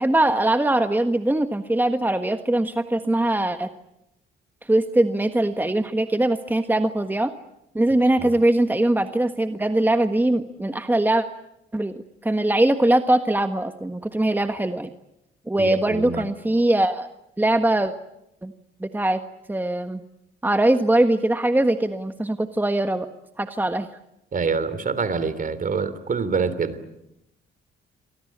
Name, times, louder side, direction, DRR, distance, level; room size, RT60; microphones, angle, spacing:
voice 1, 0.0-3.7 4.6-7.3 7.7-11.2 11.7-14.9 15.5-17.1 17.4-17.9 18.4-18.5 18.8-19.2 19.5-20.0 20.4-23.1 23.4-23.9, right 1 dB, 10° right, 8 dB, 1.4 m, -21 dB
voice 2, 15.6-16.2 24.3-26.8, right 5 dB, 45° right, 14 dB, 3.5 m, -26 dB
28.0 x 24.0 x 8.7 m, 0.84 s
cardioid pair, 90°, 20 cm